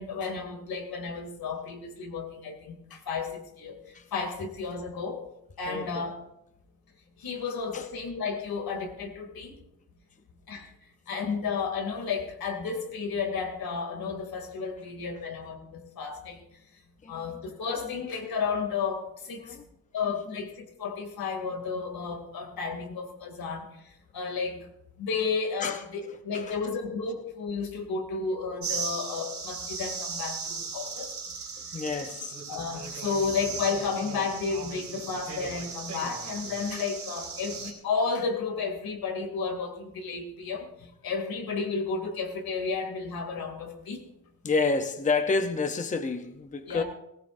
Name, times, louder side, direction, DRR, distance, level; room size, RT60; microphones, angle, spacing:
voice 1, 0.0-3.8 4.1-5.2 5.6-6.1 7.2-9.6 10.5-10.7 11.1-16.4 17.1-19.6 19.9-23.6 24.1-24.7 25.0-31.1 32.5-44.1 46.7-46.8, left 5 dB, 75° left, 2.8 m, -32 dB
voice 2, 5.7-6.1 7.7-7.8 17.0-17.1 19.4-19.6 20.3-20.4 25.6-25.8 26.3-26.6 31.7-32.4 44.4-46.8, left 4 dB, 20° left, 0.7 m, -29 dB
sound 1, 28.6-37.7, right 4 dB, 50° right, 3.9 m, -37 dB
19.5 x 17.5 x 2.6 m
wide cardioid pair, 160°, 36 cm